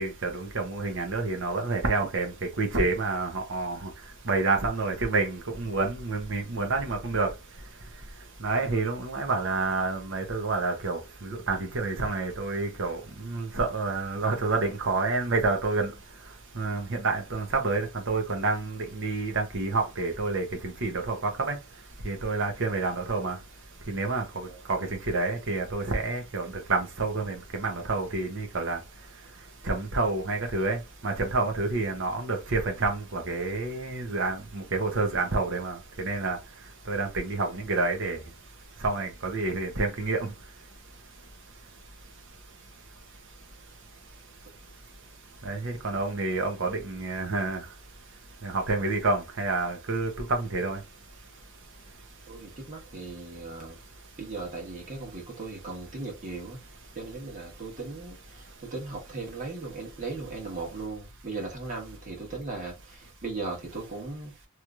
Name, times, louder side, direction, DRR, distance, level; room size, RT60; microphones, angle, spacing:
voice 1, 0.0-3.9 4.3-7.3 8.4-15.9 16.6-21.6 22.0-23.4 23.9-28.8 29.6-36.4 36.9-38.2 38.8-40.3 45.4-47.6 48.4-50.8, right 3 dB, 60° right, 1.0 m, -28 dB
voice 2, 52.3-53.7 54.2-56.6 56.9-64.3, right 3 dB, 35° right, 1.4 m, -37 dB
3.1 x 3.0 x 2.5 m
head